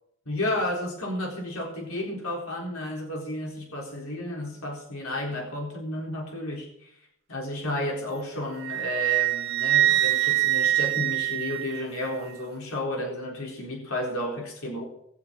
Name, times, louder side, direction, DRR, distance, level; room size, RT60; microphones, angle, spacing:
voice 1, 0.3-14.8, left 1 dB, 85° left, -1 dB, 4.0 m, -32 dB
Wind instrument woodwind instrument, 8.6-12.1, right 14 dB, 50° right, 1.1 m, -24 dB
20.5 x 8.2 x 7.5 m, 0.71 s
head